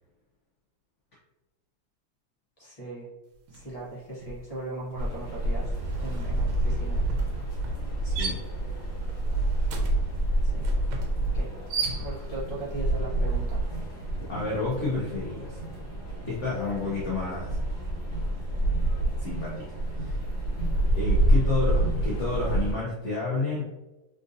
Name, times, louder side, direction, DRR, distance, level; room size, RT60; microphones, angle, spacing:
voice 1, 2.6-3.1 3.5-7.0 10.4-10.7 11.3-11.5 11.9-13.6, right 2 dB, 35° left, -7 dB, 0.6 m, -38 dB
sound 1, 3.5-3.8 4.1-12.5, right 2 dB, 85° right, 1.4 m, -36 dB
sound 2, 5.0-22.7, right 1 dB, 60° left, 1.6 m, -28 dB
voice 2, 8.0-8.4 14.3-15.6 16.3-17.6 19.2-20.3 20.9-23.7, left 3 dB, 75° left, -6 dB, 0.6 m, -30 dB
3.6 x 2.6 x 2.5 m, 1.0 s
omnidirectional pair, 2.1 m